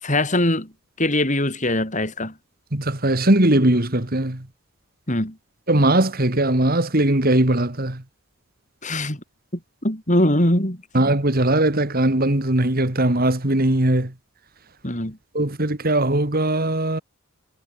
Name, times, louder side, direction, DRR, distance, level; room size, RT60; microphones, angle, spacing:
voice 1, 0.0-0.7 1.0-2.3 5.1-5.4 8.8-9.2 9.5-10.8 14.8-15.2, left 1 dB, 35° left, 6.4 m, -22 dB
voice 2, 2.7-4.4 5.7-8.0 10.9-14.1 15.3-17.0, right 1 dB, 45° right, 2.3 m, -19 dB
head